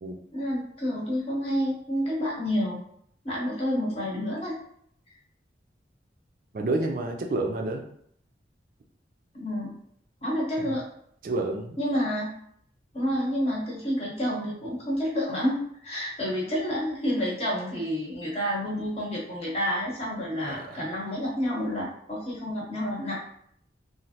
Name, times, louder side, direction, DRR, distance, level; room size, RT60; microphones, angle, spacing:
voice 1, 0.3-2.8 3.2-4.6 9.3-9.8 10.2-10.8 11.8-12.3 12.9-23.2, equal, 35° left, -4 dB, 0.8 m, -29 dB
voice 2, 6.5-7.8 10.6-10.7 11.2-11.8 20.5-20.8, right 2 dB, 50° right, 3 dB, 0.3 m, -29 dB
3.1 x 2.5 x 2.7 m, 0.67 s
head